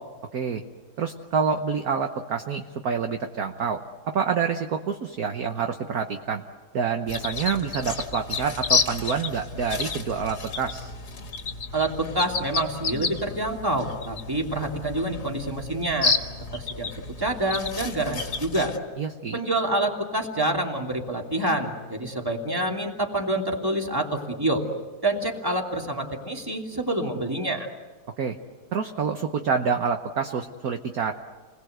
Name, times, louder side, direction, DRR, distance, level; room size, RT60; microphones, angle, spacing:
voice 1, 1.0-3.8 4.1-6.4 6.7-10.9 19.0-19.4 28.2-28.4 28.7-31.1, right 6 dB, 55° right, 5 dB, 1.4 m, -27 dB
sound 1, 7.1-18.8, left 4 dB, 50° left, 2.3 m, -31 dB
voice 2, 11.7-16.2 16.5-18.7 19.3-24.6 25.0-27.7, right 1 dB, 10° right, 1 dB, 2.7 m, -27 dB
30.0 x 21.0 x 8.0 m, 1.3 s
omnidirectional pair, 2.2 m